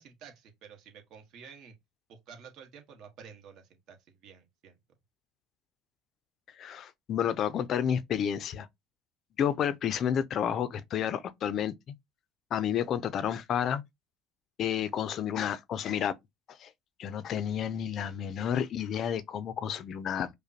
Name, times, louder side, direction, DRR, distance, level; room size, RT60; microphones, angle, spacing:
voice 1, 0.0-1.7 2.1-4.8, right 6 dB, 55° right, 1.2 m, -51 dB
voice 2, 6.6-8.7 9.4-11.7 12.5-13.8 14.6-16.1 16.5-16.7 17.0-20.3, left 9 dB, 45° left, 0.4 m, -30 dB
5.0 x 2.1 x 2.7 m
supercardioid pair, 115°, 0 cm